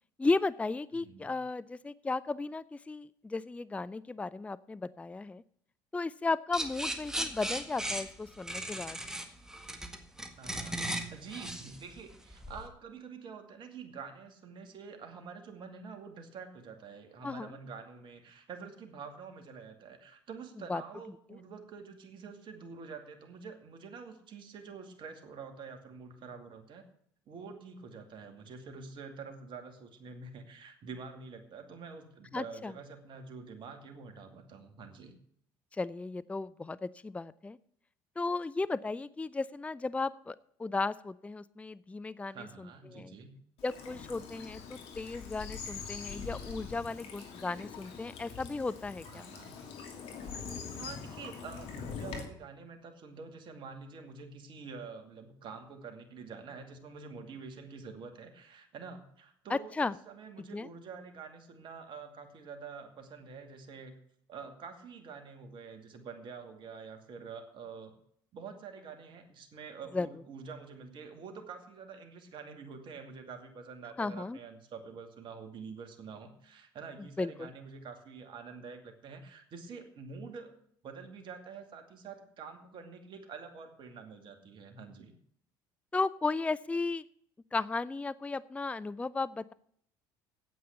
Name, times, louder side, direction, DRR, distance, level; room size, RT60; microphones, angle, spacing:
voice 1, 0.2-5.4 5.9-9.0 17.2-17.5 20.7-20.8 32.3-32.7 35.7-37.6 38.2-43.1 43.6-49.3 59.5-59.9 60.5-60.7 69.9-70.1 74.0-74.4 77.2-77.5 85.9-87.0 87.5-89.5, left 3 dB, 10° left, 18 dB, 0.5 m, -35 dB
voice 2, 0.9-1.3 10.4-26.8 27.3-35.1 42.3-43.3 49.1-49.6 50.8-64.0 64.3-67.9 68.3-80.5 80.8-85.1, right 5 dB, 50° right, 5 dB, 2.4 m, -47 dB
sound 1, 6.5-12.7, right 1 dB, 5° right, 1.7 m, -37 dB
Bird vocalization bird call bird song / Stream, 43.6-52.2, left 6 dB, 65° left, 2.8 m, -43 dB
9.3 x 8.5 x 8.1 m, 0.67 s
hypercardioid pair, 70°, 11 cm